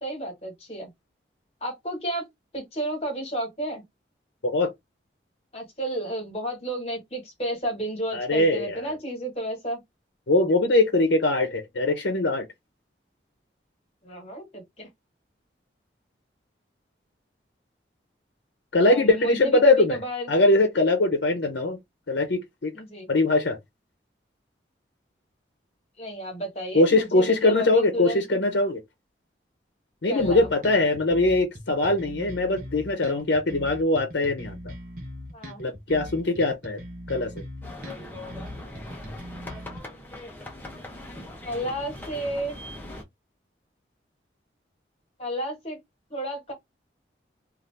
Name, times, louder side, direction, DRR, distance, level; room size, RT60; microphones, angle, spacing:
voice 1, 0.0-0.9 1.6-2.2 2.5-3.8 5.5-9.8 14.0-14.9 18.8-20.3 22.7-23.1 26.0-28.4 30.1-30.5 35.3-35.6 41.4-42.6 45.2-45.8 46.1-46.5, right 1 dB, 35° left, 1.4 m, -32 dB
voice 2, 8.1-9.0 10.3-12.5 18.7-20.0 20.3-21.8 22.1-22.7 23.1-23.6 26.7-28.8 30.0-34.6 35.6-36.8 37.1-37.3, left 2 dB, 75° left, 0.7 m, -22 dB
sound 1, 30.2-39.8, equal, 50° right, 1.1 m, -40 dB
sound 2, 37.6-43.0, left 1 dB, 10° left, 0.7 m, -40 dB
2.7 x 2.5 x 3.2 m
head